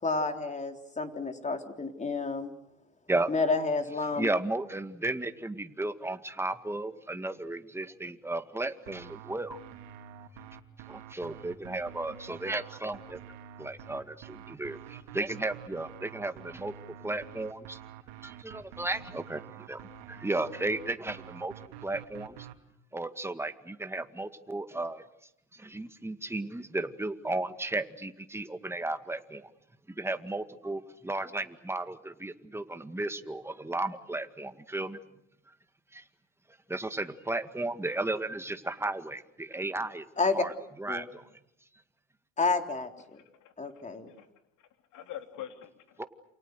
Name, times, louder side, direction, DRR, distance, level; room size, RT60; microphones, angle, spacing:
voice 1, 0.0-2.5 3.3-4.3 40.2-40.5 40.9-41.0 42.4-43.2 43.6-44.1, left 3 dB, 20° left, 5 dB, 3.7 m, -30 dB
voice 2, 4.2-9.6 10.9-13.2 13.6-16.7 17.0-17.8 18.2-21.5 21.8-22.5 22.9-25.0 25.5-29.5 30.0-35.0 35.9-36.0 36.7-40.1 40.3-40.5 40.8-41.3 46.0-46.1, right 2 dB, 5° right, 9 dB, 2.0 m, -34 dB
sound 1, 8.9-22.6, right 9 dB, 65° right, 3.5 m, -48 dB
voice 3, 43.1-43.5 44.1-44.3 44.6-46.0, left 11 dB, 50° left, 6 dB, 3.7 m, -45 dB
29.0 x 28.5 x 6.6 m, 0.82 s
hypercardioid pair, 80°, 39 cm